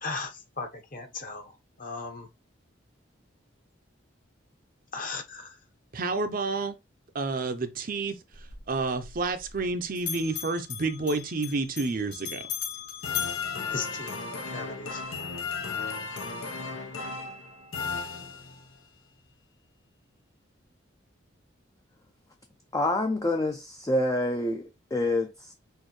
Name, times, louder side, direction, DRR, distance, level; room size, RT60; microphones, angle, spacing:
voice 1, 0.0-2.3 4.9-5.6 13.7-14.2 14.5-15.0, left 4 dB, 45° left, 1.0 m, -37 dB
voice 2, 5.9-6.8 7.1-8.1 8.7-12.4, right 3 dB, 45° right, 0.6 m, -29 dB
Bell, 8.3-9.7 10.0-14.4, left 9 dB, 65° left, 2.9 m, -38 dB
sound 1, 13.0-18.8, left 4 dB, 85° left, 0.8 m, -35 dB
voice 3, 22.7-25.5, left 1 dB, 15° left, 0.4 m, -27 dB
6.3 x 2.7 x 3.1 m
head